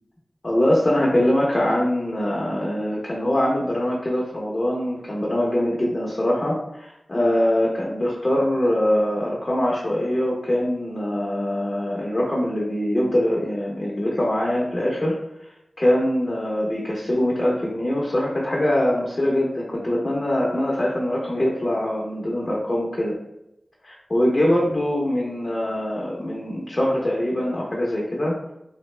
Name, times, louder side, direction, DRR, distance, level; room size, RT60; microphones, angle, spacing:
voice 1, 0.4-15.1 15.8-23.2 23.8-28.4, left 1 dB, 40° left, -4 dB, 0.7 m, -23 dB
2.8 x 2.0 x 3.1 m, 0.86 s
cardioid pair, 45°, 0 cm